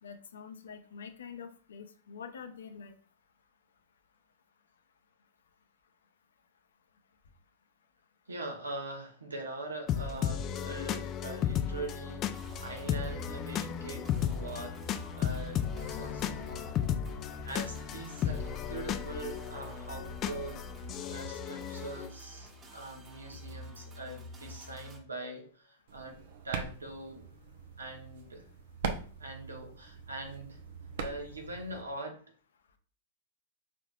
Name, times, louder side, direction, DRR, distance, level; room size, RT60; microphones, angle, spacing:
voice 1, 0.0-2.9, left 6 dB, 75° left, 9 dB, 0.6 m, -46 dB
voice 2, 8.3-14.8 15.2-16.8 17.4-26.2 26.4-27.2 27.8-28.5 29.2-30.6 31.0-32.2, right 2 dB, 85° right, 2 dB, 1.1 m, -42 dB
sound 1, 9.9-22.1, left 9 dB, 35° left, 0.4 m, -35 dB
sound 2, 12.3-25.0, equal, 30° right, 1.3 m, -47 dB
sound 3, 25.9-31.8, right 5 dB, 60° right, 0.6 m, -42 dB
4.7 x 3.7 x 2.4 m, 0.41 s
hypercardioid pair, 100°, 0 cm